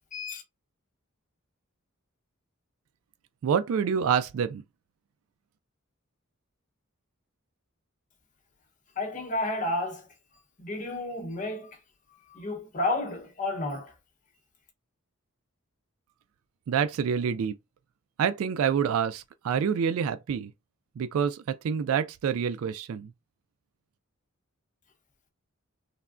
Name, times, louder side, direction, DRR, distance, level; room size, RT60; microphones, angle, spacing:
voice 1, 0.1-0.4 9.0-10.1 10.6-11.8 12.1-13.9, left 2 dB, 35° left, 0.8 m, -31 dB
voice 2, 3.4-4.6 16.7-17.6 18.2-20.5 21.0-23.1, right 7 dB, 70° right, 0.3 m, -27 dB
3.3 x 2.1 x 2.4 m
head